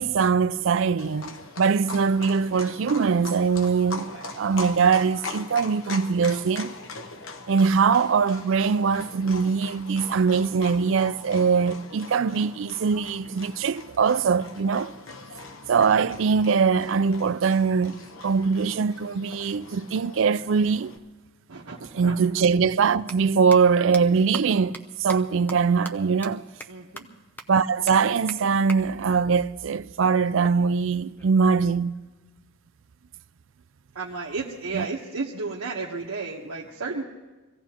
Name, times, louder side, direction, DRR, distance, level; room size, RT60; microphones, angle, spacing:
voice 1, 0.0-6.7 7.5-14.9 15.7-20.9 21.9-26.5 27.5-31.9 34.7-34.9, right 5 dB, 60° right, 0.4 m, -22 dB
Livestock farm animals working animals, 1.0-21.0, left 3 dB, 60° left, 0.9 m, -41 dB
voice 2, 21.5-22.2 26.7-27.1 33.9-37.0, right 4 dB, 80° right, 1.1 m, -33 dB
sound 1, 23.0-23.1 23.5-23.6 23.9-24.0 24.3-24.4 24.7-24.8 25.1-25.2 25.5-25.6 25.9-26.0 26.2-26.3 26.6-26.7 27.0-27.1 27.4-27.5 27.9-28.0 28.3-28.4 28.7-28.8 30.4-31.5, equal, 10° left, 0.6 m, -38 dB
24.5 x 16.0 x 2.9 m
head